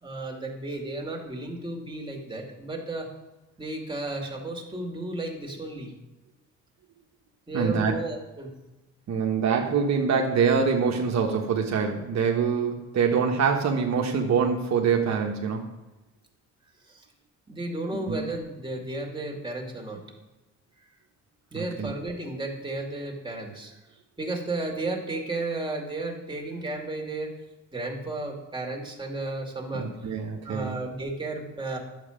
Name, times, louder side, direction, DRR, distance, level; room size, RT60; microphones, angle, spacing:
voice 1, 0.0-3.1 3.6-5.9 7.5-8.5 16.8-17.1 17.5-20.0 21.5-23.8 24.2-27.4 27.7-30.1 30.4-31.8, right 2 dB, 15° right, 0 dB, 2.4 m, -33 dB
voice 2, 7.5-8.0 9.1-15.7 18.1-18.2 21.5-21.9 29.7-30.8, right 6 dB, 65° right, 1 dB, 1.2 m, -25 dB
11.0 x 7.6 x 5.1 m, 1.1 s
cardioid pair, 90°, 30 cm